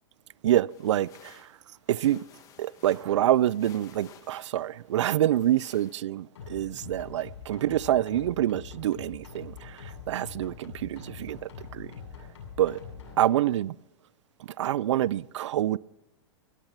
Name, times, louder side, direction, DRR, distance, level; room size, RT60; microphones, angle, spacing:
voice 1, 0.4-1.6 1.9-2.3 2.6-11.9 12.6-12.8 13.2-13.8 14.4-15.8, right 12 dB, 90° right, 0.4 m, -27 dB
sound 1, 0.7-6.0, left 8 dB, 25° left, 1.3 m, -56 dB
sound 2, 6.4-13.2, left 6 dB, 80° left, 7.5 m, -44 dB
17.0 x 12.0 x 5.9 m
supercardioid pair, 155°, 15 cm